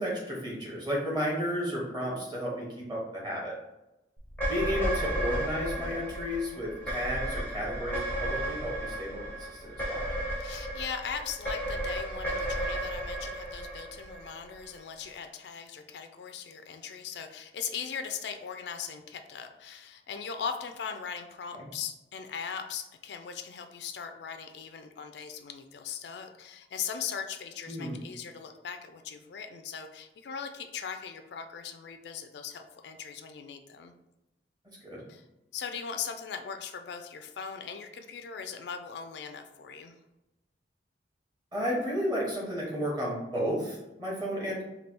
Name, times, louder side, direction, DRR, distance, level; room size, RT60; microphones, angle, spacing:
voice 1, 0.0-3.5 4.5-10.0 21.6-21.7 27.7-28.0 34.8-35.0 41.5-44.6, equal, 25° right, -4 dB, 1.2 m, -33 dB
sound 1, 4.3-14.8, right 1 dB, 10° left, 0.6 m, -33 dB
voice 2, 10.4-33.9 35.1-35.2 35.5-39.9, left 7 dB, 70° left, 6 dB, 0.4 m, -39 dB
3.3 x 2.3 x 4.3 m, 0.95 s
head